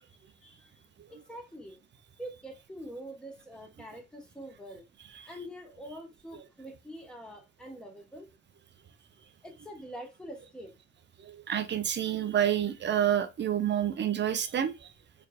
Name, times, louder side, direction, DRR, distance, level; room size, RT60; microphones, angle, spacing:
voice 1, 0.3-0.8 1.1-1.8 2.2-4.8 5.3-8.3 9.4-10.7, equal, ahead, 1.2 m, -45 dB
voice 2, 11.3-14.7, right 10 dB, 30° right, 0.6 m, -28 dB
4.4 x 2.6 x 2.4 m
figure-of-eight pair, 50°, 40 cm